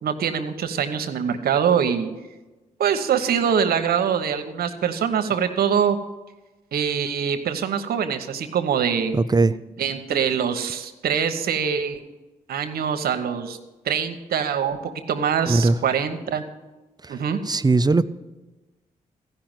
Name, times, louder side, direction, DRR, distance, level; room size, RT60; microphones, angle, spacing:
voice 1, 0.0-2.1 2.8-6.0 6.7-9.1 9.8-12.0 12.5-13.6 13.8-16.4 17.1-17.4, right 7 dB, 80° right, 8 dB, 1.0 m, -24 dB
voice 2, 9.1-9.6 15.5-15.8 17.0-18.0, right 3 dB, 25° right, 14 dB, 0.6 m, -20 dB
14.5 x 5.7 x 8.9 m, 1.1 s
supercardioid pair, 50°, 16 cm